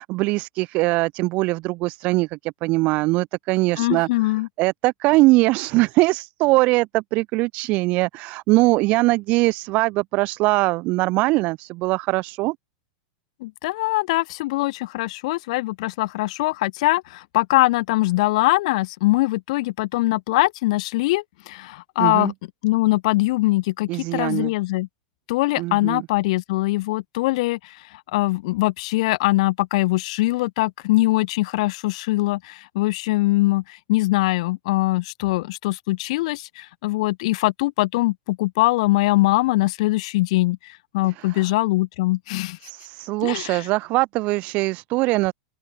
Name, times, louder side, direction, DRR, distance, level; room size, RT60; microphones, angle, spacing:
voice 1, 0.0-12.6 22.0-22.3 23.9-24.5 25.6-26.1 41.2-41.5 42.6-45.3, right 22 dB, 35° right, 2.5 m, -22 dB
voice 2, 3.8-4.5 13.4-22.3 22.6-24.9 25.3-27.8 28.1-42.6 43.2-43.5, left 20 dB, 50° left, 1.3 m, -22 dB
supercardioid pair, 170°, 4 cm